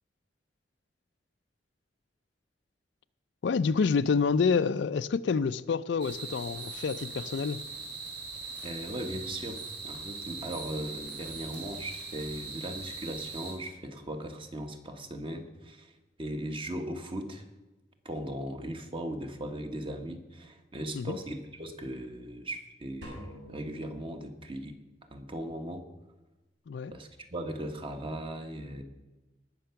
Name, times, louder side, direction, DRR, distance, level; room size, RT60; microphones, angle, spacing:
voice 1, 3.4-7.6 20.9-21.2 26.7-26.9, left 5 dB, 75° left, 0.4 m, -28 dB
sound 1, 6.0-13.5, right 4 dB, 70° right, 4.3 m, -41 dB
voice 2, 8.6-15.9 16.2-17.4 18.0-24.8 25.1-25.9 26.9-28.8, right 1 dB, 30° right, 1.2 m, -38 dB
sound 2, 23.0-24.8, equal, 90° right, 4.1 m, -48 dB
19.0 x 6.8 x 5.8 m
head